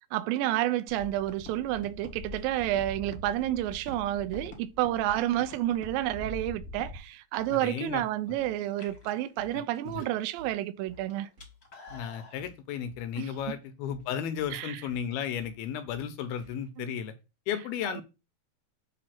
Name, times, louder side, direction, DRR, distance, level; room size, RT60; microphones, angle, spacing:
voice 1, 0.1-11.3 13.2-13.3 14.5-14.8 16.8-16.9 17.8-18.0, right 13 dB, 80° right, 2.1 m, -30 dB
sound 1, 0.9-7.0, left 1 dB, 50° left, 0.6 m, -44 dB
sound 2, 0.9-16.8, left 3 dB, 45° right, 0.9 m, -55 dB
voice 2, 7.6-8.0 9.5-10.0 11.9-17.1 17.5-18.0, left 8 dB, 80° left, 2.5 m, -34 dB
sound 3, 7.6-8.1 8.6-10.5 10.8-12.4, left 2 dB, 35° left, 1.0 m, -50 dB
7.6 x 2.8 x 5.9 m
omnidirectional pair, 4.5 m